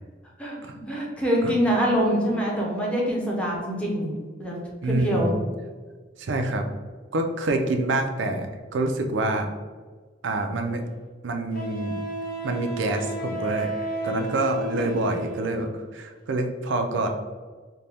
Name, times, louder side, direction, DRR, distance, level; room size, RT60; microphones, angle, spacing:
voice 1, 0.9-4.6 4.8-5.3, equal, 5° left, -4 dB, 0.7 m, -25 dB
voice 2, 4.8-5.4 6.2-6.7 7.1-9.5 10.2-10.8 11.2-12.0 12.4-13.7 14.0-17.1, right 2 dB, 80° right, 5 dB, 0.4 m, -26 dB
Wind instrument woodwind instrument, 11.5-15.6, right 2 dB, 50° left, 0.5 m, -33 dB
4.0 x 2.2 x 3.3 m, 1.4 s
head